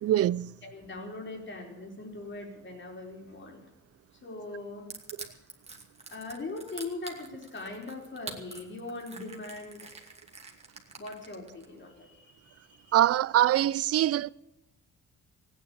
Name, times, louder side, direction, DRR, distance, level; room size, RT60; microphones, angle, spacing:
voice 1, 0.0-0.6 5.2-5.3 12.9-14.3, right 13 dB, 50° right, 0.5 m, -24 dB
voice 2, 0.6-3.7 4.2-4.9 6.1-9.9 11.0-12.9, left 2 dB, 40° left, 4.5 m, -41 dB
Crushing, 4.9-11.6, right 3 dB, 20° right, 2.5 m, -45 dB
16.0 x 9.8 x 8.6 m
cardioid pair, 90°, 30 cm